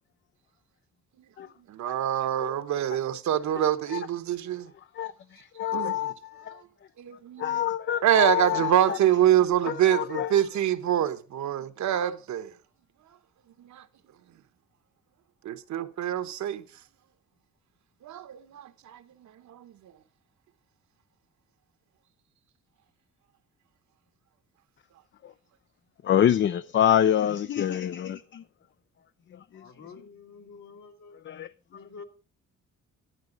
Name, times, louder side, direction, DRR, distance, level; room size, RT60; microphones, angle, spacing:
voice 1, 1.7-4.7 5.7-5.9 7.0-7.6 8.0-12.5 13.6-13.8 15.4-16.6 18.0-19.0 19.5-19.7, right 11 dB, 65° right, 1.1 m, -25 dB
voice 2, 5.0-6.6 7.4-9.0 9.6-10.4 26.0-28.4 31.3-31.5, left 10 dB, 40° left, 0.4 m, -26 dB
voice 3, 29.5-31.2 31.7-32.0, left 5 dB, 65° left, 2.3 m, -47 dB
11.5 x 11.5 x 3.9 m
cardioid pair, 120°, 30 cm